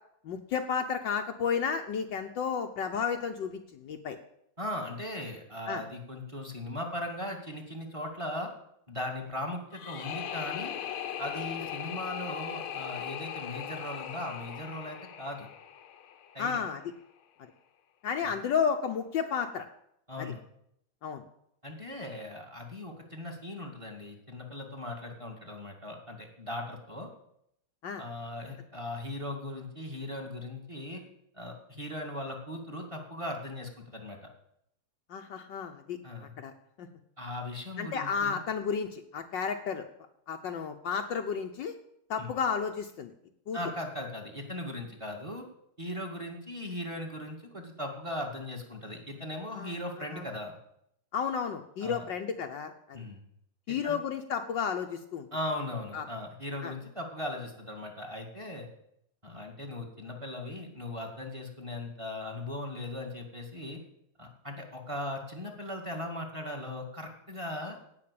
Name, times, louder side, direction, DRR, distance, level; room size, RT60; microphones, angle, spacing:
voice 1, 0.2-4.2 5.7-5.8 16.4-16.8 18.0-19.7 20.2-20.3 21.0-21.2 27.8-28.0 35.1-36.0 36.4-36.5 36.8-36.9 37.8-39.9 40.3-41.7 42.1-43.1 43.5-43.6 49.5-49.7 50.1-50.2 51.1-53.0 53.7-55.3 55.9-56.0 56.6-56.7, left 6 dB, 65° left, 5 dB, 1.4 m, -32 dB
voice 2, 4.6-8.5 8.9-10.8 11.2-15.5 16.3-16.6 20.1-20.4 21.6-27.1 28.0-31.0 31.3-34.2 36.0-36.3 37.2-38.4 42.2-42.3 43.5-45.4 45.8-50.5 51.8-52.1 52.9-53.2 53.7-54.0 55.3-58.7 59.2-63.8 64.2-67.8, left 1 dB, 15° right, 2 dB, 2.2 m, -38 dB
sound 1, 9.7-16.7, left 9 dB, 80° left, 1.8 m, -39 dB
17.0 x 5.8 x 8.6 m, 0.75 s
omnidirectional pair, 2.3 m